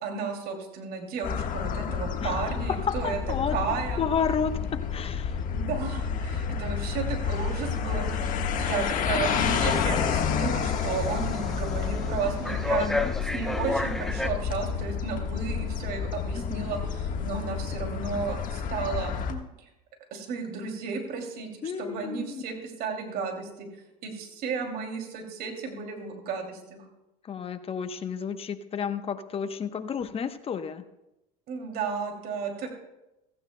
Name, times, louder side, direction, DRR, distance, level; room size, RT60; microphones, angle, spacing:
voice 1, 0.0-3.2 3.5-4.0 5.5-12.9 13.3-19.7 20.1-23.7 24.0-26.8 31.5-32.7, right 5 dB, 55° right, 3 dB, 2.6 m, -33 dB
sound 1, 1.2-19.3, left 7 dB, 45° left, 1.4 m, -30 dB
voice 2, 2.7-5.4 12.8-13.1 16.3-16.8 21.6-22.4 27.2-30.8, left 6 dB, 30° left, 9 dB, 0.9 m, -32 dB
sound 2, 7.3-14.3, left 2 dB, ahead, 0.7 m, -35 dB
16.0 x 14.5 x 2.2 m, 0.94 s
supercardioid pair, 90°, 18 cm